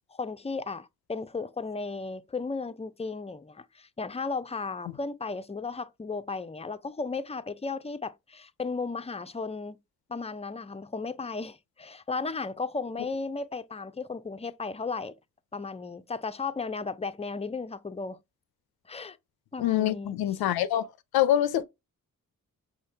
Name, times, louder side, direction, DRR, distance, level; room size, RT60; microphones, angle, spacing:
voice 1, 0.1-9.8 10.1-15.1 15.5-18.2 18.9-19.2 19.5-20.1, left 4 dB, 15° left, 0.5 m, -35 dB
voice 2, 19.6-20.9 21.1-21.6, left 12 dB, 90° left, 0.5 m, -25 dB
5.5 x 2.9 x 3.3 m
cardioid pair, 50°, 36 cm